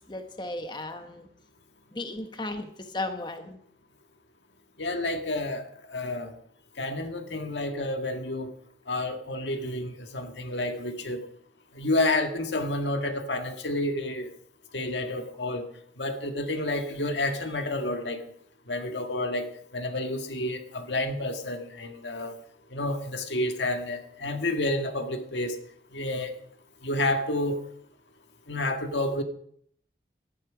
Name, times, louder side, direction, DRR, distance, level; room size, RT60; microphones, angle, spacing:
voice 1, 0.1-1.3 1.9-3.6, left 2 dB, 25° left, 7 dB, 1.2 m, -35 dB
voice 2, 4.8-6.3 6.8-8.5 8.9-11.2 11.7-14.3 14.7-15.7 16.0-18.2 18.7-19.5 19.7-22.4 22.7-25.6 25.9-26.3 26.8-27.6 28.5-29.2, left 1 dB, 85° left, 6 dB, 1.8 m, -30 dB
18.0 x 12.0 x 5.1 m, 0.66 s
head